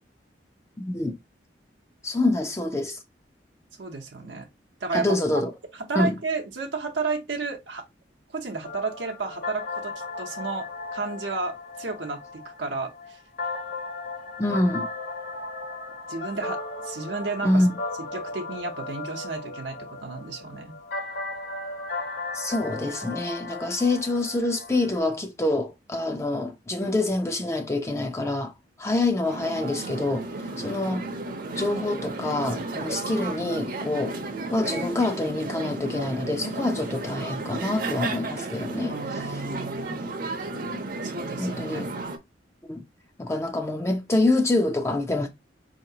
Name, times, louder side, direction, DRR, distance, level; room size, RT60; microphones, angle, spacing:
voice 1, 0.8-1.2 2.0-3.0 4.9-5.5 6.0-6.1 14.4-14.9 17.4-17.7 22.3-28.5 28.8-30.3 30.6-31.1 31.6-34.2 34.5-39.4 41.4-41.9 42.7-42.8 43.2-45.3, left 2 dB, 15° left, 0.4 m, -26 dB
voice 2, 3.8-4.5 4.8-5.2 5.9-7.9 8.3-9.9 10.2-13.2 16.1-17.7 18.1-20.7 38.9-40.0 41.0-41.9, right 4 dB, 80° right, 0.7 m, -32 dB
sound 1, 8.6-25.0, left 3 dB, 55° left, 1.0 m, -36 dB
sound 2, 29.2-42.2, right 2 dB, 50° right, 0.7 m, -33 dB
4.7 x 2.8 x 2.7 m
head